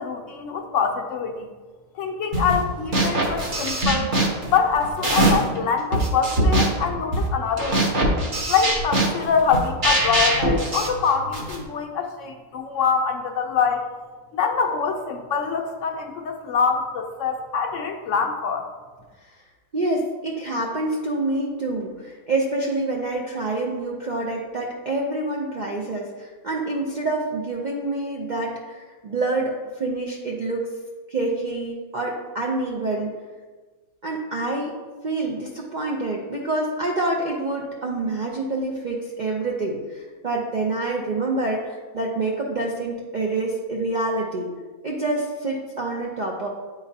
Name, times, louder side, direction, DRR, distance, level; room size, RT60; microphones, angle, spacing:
voice 1, 0.0-1.5 2.0-4.1 4.5-8.0 8.5-13.9 14.3-18.7, left 6 dB, 70° left, 3 dB, 0.9 m, -24 dB
sound 1, 2.3-2.6 2.9-5.6 5.9-11.6, right 1 dB, 40° right, 0.9 m, -22 dB
voice 2, 19.7-30.7 31.1-33.1 34.0-34.7 35.0-44.5 44.8-46.5, right 2 dB, 55° right, -2 dB, 0.5 m, -27 dB
9.0 x 3.9 x 2.7 m, 1.4 s
omnidirectional pair, 1.5 m